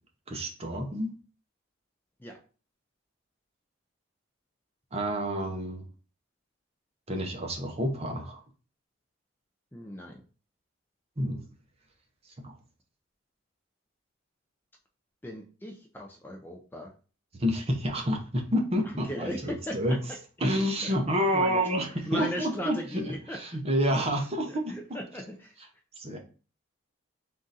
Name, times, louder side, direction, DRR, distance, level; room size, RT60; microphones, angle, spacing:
voice 1, 0.3-1.1 4.9-5.9 7.1-8.4 11.2-11.4 12.4-12.5 17.4-20.0 20.4-23.0 23.3-24.7 26.0-26.2, equal, 30° right, 2 dB, 0.8 m, -29 dB
voice 2, 9.7-10.2 15.2-16.9 18.8-20.0 20.5-20.6 20.8-20.9 21.3-21.6 22.1-23.4 24.5-25.5, equal, 10° left, 1 dB, 0.4 m, -38 dB
3.6 x 2.6 x 4.0 m, 0.37 s
head